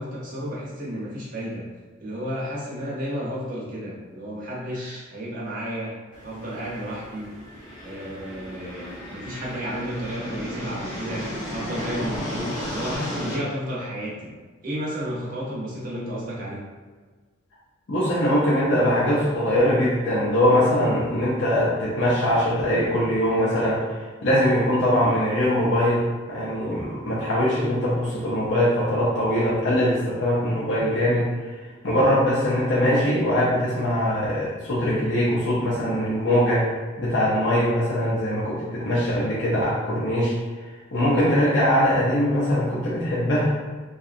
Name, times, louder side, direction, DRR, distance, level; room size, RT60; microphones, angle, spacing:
voice 1, 0.0-1.7 2.0-5.9 6.2-7.3 7.8-11.2 11.5-14.3 14.6-16.6, equal, 40° right, -5 dB, 0.7 m, -32 dB
sound 1, 6.1-13.3, equal, 20° left, 0.9 m, -34 dB
voice 2, 17.9-26.0 26.3-31.3 31.8-36.7 37.0-40.4 40.9-43.6, equal, 60° left, -7 dB, 0.5 m, -22 dB
2.7 x 2.3 x 2.4 m, 1.4 s
head